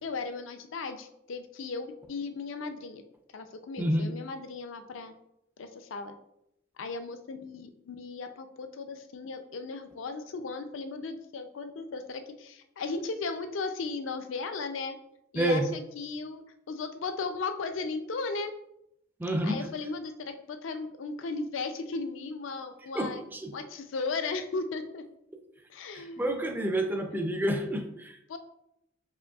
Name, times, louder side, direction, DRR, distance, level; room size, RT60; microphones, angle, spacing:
voice 1, 0.0-3.0 3.3-5.1 5.6-6.1 6.8-15.0 15.3-18.5 19.4-23.2 23.5-25.0 25.7-26.4 28.3-28.4, left 4 dB, 75° left, 8 dB, 0.4 m, -36 dB
voice 2, 3.8-4.1 15.3-15.7 19.2-19.6 22.9-23.5 25.9-28.2, right 1 dB, 10° right, 5 dB, 0.4 m, -29 dB
5.0 x 2.9 x 2.3 m, 0.79 s
head